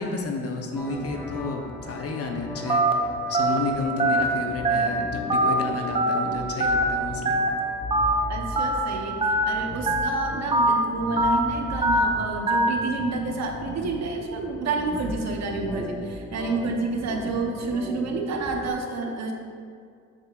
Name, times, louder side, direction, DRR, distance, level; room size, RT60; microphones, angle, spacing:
voice 1, 0.0-7.4, left 4 dB, 50° left, 3 dB, 0.9 m, -31 dB
sound 1, 0.7-18.7, left 1 dB, 5° left, 1.4 m, -38 dB
Telephone, 2.7-2.9 3.3-3.6 4.0-4.2 4.6-4.9 5.3-5.5 5.9-6.2 6.6-6.8 7.3-7.5 7.9-8.1 8.6-8.8 9.2-9.4 9.9-10.1 10.5-10.7 11.2-11.4 11.8-12.0 12.5-12.7, right 2 dB, 20° right, 0.5 m, -21 dB
voice 2, 8.3-19.3, right 3 dB, 60° right, 2 dB, 0.9 m, -29 dB
7.0 x 6.6 x 2.4 m, 2.3 s
cardioid pair, 90°, 30 cm